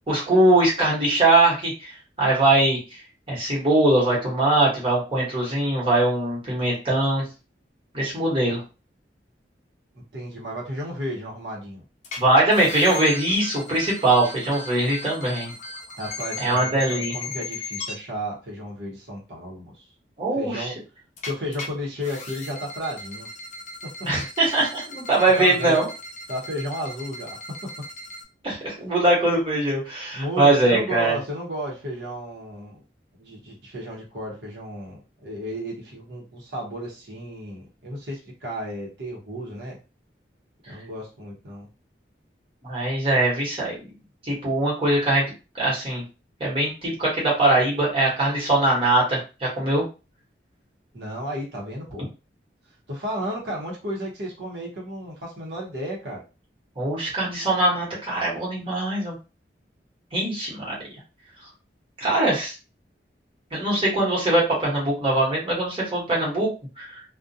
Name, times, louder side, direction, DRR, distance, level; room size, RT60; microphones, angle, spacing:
voice 1, 0.1-2.8 3.3-7.2 7.9-8.6 12.2-15.5 16.4-17.1 20.2-20.7 24.1-25.8 28.4-31.2 42.6-43.7 44.2-45.2 45.5-46.0 46.4-49.8 56.8-59.2 60.1-60.8 62.0-62.5 63.5-66.5 66.8-67.0, right 2 dB, 30° right, -6 dB, 1.1 m, -21 dB
voice 2, 10.1-11.8 16.0-19.8 20.3-20.8 21.2-23.3 23.8-24.1 25.4-25.8 26.3-27.7 30.1-32.8 33.2-39.8 40.7-41.7 50.9-52.1 52.9-56.2, equal, 70° right, -4 dB, 0.8 m, -33 dB
sound 1, 12.0-12.2 12.5-17.9 21.2-21.7 22.0-28.2, left 3 dB, 40° left, 0.5 m, -37 dB
2.4 x 2.1 x 2.7 m, 0.31 s
head